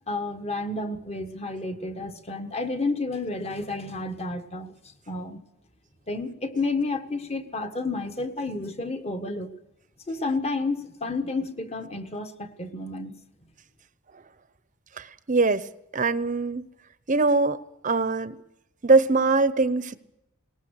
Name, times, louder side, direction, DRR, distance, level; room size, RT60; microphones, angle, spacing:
voice 1, 0.1-5.4 6.1-9.5 10.1-13.1, left 3 dB, 30° left, 7 dB, 1.4 m, -31 dB
voice 2, 15.0-15.6 15.9-16.6 17.1-17.6 17.8-18.4 18.8-20.0, right 3 dB, 35° right, 14 dB, 0.8 m, -22 dB
21.0 x 19.0 x 6.5 m, 0.90 s
head